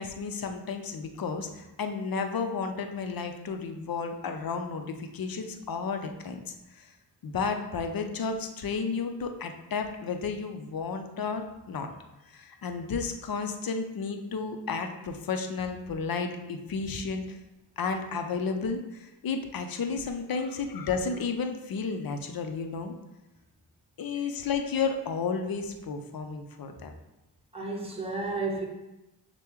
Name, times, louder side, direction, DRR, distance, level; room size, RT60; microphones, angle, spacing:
voice 1, 0.0-6.4 6.7-6.9 7.2-11.9 12.3-17.4 17.8-22.9 24.0-26.9, left 5 dB, 55° left, 6 dB, 0.7 m, -32 dB
voice 2, 27.5-28.7, right 3 dB, 15° right, -1 dB, 1.1 m, -32 dB
6.4 x 2.3 x 3.1 m, 0.99 s
supercardioid pair, 40°, 44 cm